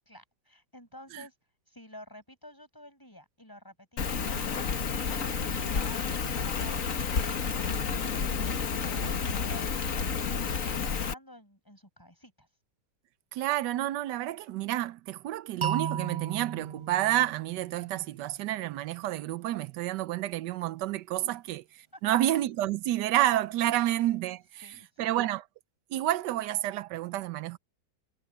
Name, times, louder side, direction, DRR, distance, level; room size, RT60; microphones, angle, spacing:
voice 1, 0.1-1.3 1.7-4.7 5.2-6.0 6.4-6.9 7.4-10.1 10.6-12.5 21.2-21.3 21.9-22.2 24.6-25.1, equal, 10° left, 6.6 m, -50 dB
Rain, 4.0-11.1, left 5 dB, 55° left, 1.7 m, -30 dB
voice 2, 13.3-21.6 22.0-24.6 25.0-25.4 25.9-27.6, right 14 dB, 90° right, 1.2 m, -29 dB
sound 1, 15.6-18.5, right 8 dB, 20° right, 0.9 m, -35 dB
omnidirectional pair, 1.8 m